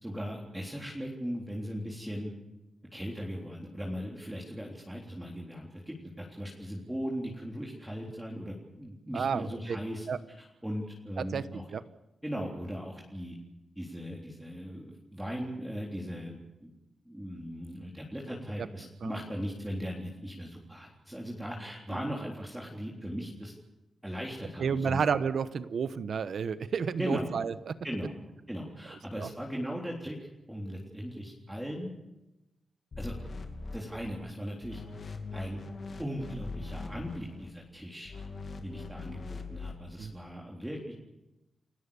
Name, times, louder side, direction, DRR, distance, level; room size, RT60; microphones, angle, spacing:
voice 1, 0.0-2.3 2.9-10.1 10.4-11.7 12.2-13.3 13.8-16.7 17.1-23.5 24.0-25.0 27.0-27.3 27.8-28.2 28.5-30.2 30.5-31.9 33.0-33.2 33.7-34.8 35.3-35.6 36.0-38.1 38.6-40.9, equal, 5° right, -2 dB, 3.7 m, -38 dB
voice 2, 9.1-9.8 10.1-10.2 11.2-11.4 11.7-11.8 18.6-18.7 19.0-19.2 24.6-27.8 29.2-29.3 40.0-40.1, right 6 dB, 70° right, 13 dB, 1.1 m, -31 dB
sound 1, 32.9-34.3 34.6-37.5 38.0-39.8, left 3 dB, 50° left, 2.7 m, -41 dB
30.0 x 16.5 x 7.1 m, 0.97 s
cardioid pair, 95°, 0 cm